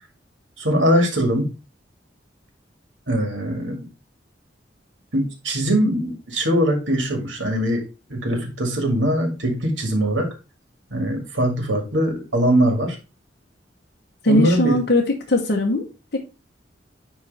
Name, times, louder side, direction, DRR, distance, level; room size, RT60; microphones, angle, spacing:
voice 1, 0.6-1.4 3.1-3.8 5.1-7.8 8.1-10.3 10.9-13.0 14.3-14.8, equal, 90° right, 3 dB, 2.1 m, -21 dB
voice 2, 14.2-15.8 16.1-16.2, left 1 dB, 60° left, 0 dB, 1.1 m, -19 dB
9.7 x 3.2 x 4.2 m, 0.30 s
head